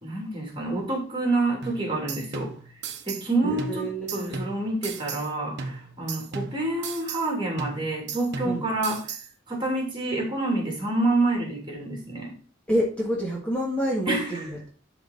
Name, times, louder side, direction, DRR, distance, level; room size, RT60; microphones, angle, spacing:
voice 1, 0.0-2.5 3.0-9.2 9.5-12.3 14.1-14.4, right 2 dB, 25° right, 0 dB, 3.1 m, -28 dB
sound 1, 1.6-3.3 3.6-5.3 5.6-7.3 7.6-9.3, right 5 dB, 60° right, 1.1 m, -36 dB
voice 2, 3.4-4.4 8.4-8.6 12.7-14.7, equal, 5° left, -4 dB, 1.8 m, -28 dB
11.5 x 4.1 x 4.0 m, 0.39 s
head